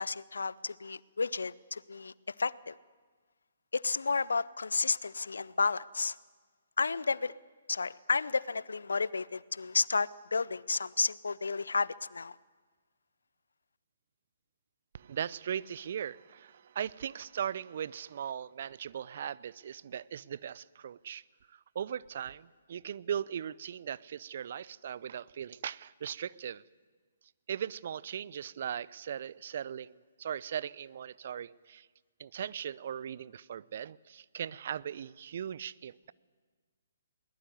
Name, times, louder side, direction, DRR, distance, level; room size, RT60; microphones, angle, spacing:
voice 1, 0.0-2.1 2.4-2.8 3.7-6.2 6.8-7.3 7.7-12.4, left 4 dB, 70° left, 21 dB, 0.7 m, -32 dB
voice 2, 14.9-26.6 27.5-31.9 32.2-36.1, right 9 dB, 50° right, 21 dB, 0.6 m, -39 dB
21.5 x 19.5 x 9.6 m, 1.4 s
figure-of-eight pair, 130°, 0 cm